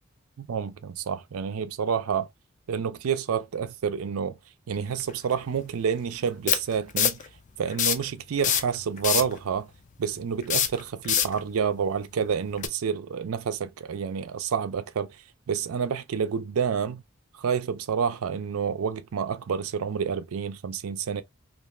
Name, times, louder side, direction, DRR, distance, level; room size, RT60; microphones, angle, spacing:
voice 1, 0.4-2.3 2.7-4.4 4.7-7.2 7.6-9.7 10.0-15.1 15.5-17.0 17.4-21.2, right 6 dB, 85° right, 0.4 m, -29 dB
sound 1, 5.0-5.1 6.5-7.3 7.7-8.1 8.4-9.4 10.4-11.4 12.6-12.7, left 9 dB, 35° left, 0.3 m, -24 dB
2.5 x 2.3 x 3.1 m
head